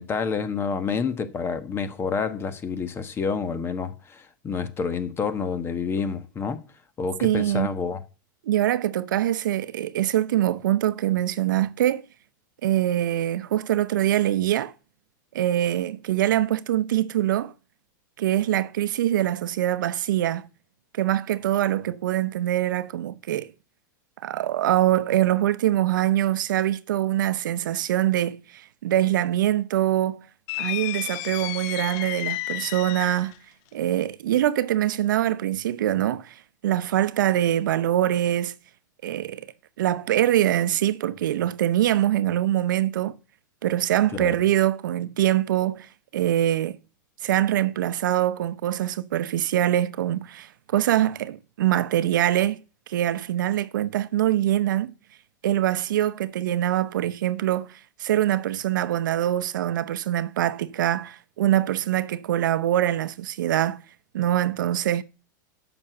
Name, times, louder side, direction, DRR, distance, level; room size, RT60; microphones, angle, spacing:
voice 1, 0.0-6.6 7.0-8.0 44.1-44.4, left 5 dB, 20° left, 1.2 m, -28 dB
voice 2, 7.2-7.7 8.4-12.1 12.6-14.7 15.3-17.5 18.2-20.5 20.9-23.5 24.2-30.2 30.6-33.4 33.7-38.5 39.0-39.5 39.8-43.2 43.6-46.8 47.2-52.6 52.9-54.9 55.4-63.8 64.1-65.0, right 12 dB, 75° right, 0.8 m, -24 dB
sound 1, 30.5-33.4, left 19 dB, 50° left, 0.4 m, -32 dB
8.7 x 6.2 x 7.9 m
hypercardioid pair, 125°, 11 cm